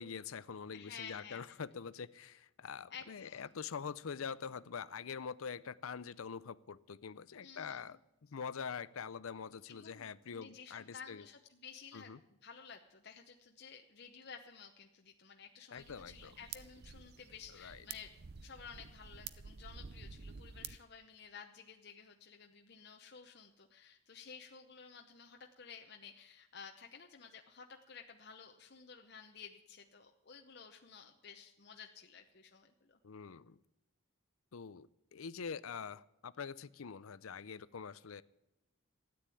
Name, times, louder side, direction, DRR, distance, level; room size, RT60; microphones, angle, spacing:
voice 1, 0.0-11.2 11.9-12.2 15.7-16.3 17.5-17.8 33.0-33.6 34.5-38.2, left 6 dB, 85° left, 17 dB, 0.6 m, -45 dB
voice 2, 0.7-1.6 2.9-3.4 7.4-7.9 9.7-12.1 12.4-18.1 18.4-33.0, left 6 dB, 50° left, 3 dB, 0.9 m, -53 dB
sound 1, 15.8-20.8, right 7 dB, 50° right, 0.6 m, -50 dB
13.5 x 9.5 x 8.4 m, 0.90 s
head